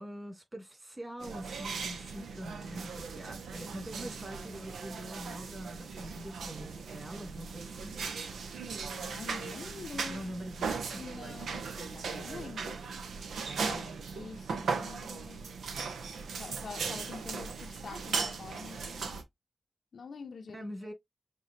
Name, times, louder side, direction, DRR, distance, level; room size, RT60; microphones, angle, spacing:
voice 1, 0.0-8.0 10.1-11.0 13.6-13.9 20.5-20.9, equal, 25° right, 3.2 m, -44 dB
sound 1, 1.2-19.2, right 5 dB, 90° right, 0.6 m, -38 dB
voice 2, 8.9-10.2 11.0-12.9 13.6-15.6 16.4-19.2 19.9-20.7, left 5 dB, 75° left, 0.6 m, -46 dB
6.5 x 2.3 x 2.6 m
cardioid pair, 45°, 0 cm